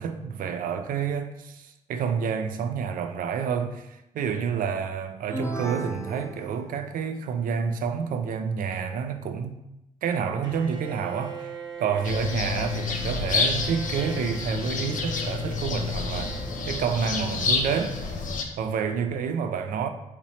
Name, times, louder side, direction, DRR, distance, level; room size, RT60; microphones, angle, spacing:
voice 1, 0.0-9.6 10.0-18.2 18.6-19.9, right 6 dB, 80° right, 0.4 m, -29 dB
sound 1, 5.3-7.2, right 1 dB, 20° left, 0.7 m, -35 dB
Bowed string instrument, 10.4-17.4, right 5 dB, 35° right, 0.7 m, -41 dB
sound 2, 12.0-18.4, left 4 dB, 70° left, 0.6 m, -29 dB
4.3 x 3.0 x 2.7 m
cardioid pair, 60°, 14 cm